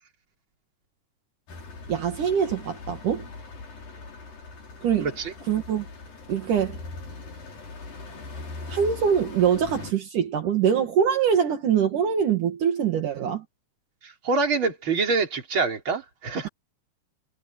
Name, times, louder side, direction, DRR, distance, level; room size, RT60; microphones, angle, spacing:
sound 1, 1.5-9.9, left 3 dB, 85° left, 7.4 m, -40 dB
voice 1, 1.9-3.3 4.8-5.1 5.5-5.9 6.3-6.8 8.7-13.5, right 8 dB, 70° right, 3.4 m, -23 dB
voice 2, 5.0-5.3 14.0-16.5, right 4 dB, 35° right, 4.4 m, -26 dB
omnidirectional pair, 3.9 m